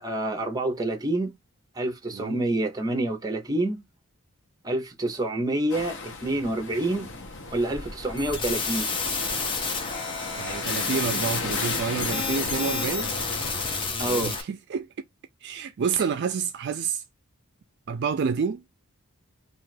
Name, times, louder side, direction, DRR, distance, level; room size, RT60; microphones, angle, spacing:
voice 1, 0.0-1.3 1.8-3.8 4.6-7.1 7.5-8.9 14.0-14.3, right 1 dB, 15° right, 0.6 m, -27 dB
sound 1, 5.7-13.9, left 3 dB, 55° left, 0.8 m, -36 dB
sound 2, 8.2-14.4, left 4 dB, 25° left, 0.5 m, -30 dB
voice 2, 10.4-13.1 14.0-14.9 15.4-17.0 17.9-18.6, right 6 dB, 50° right, 0.3 m, -29 dB
2.5 x 2.3 x 3.2 m
head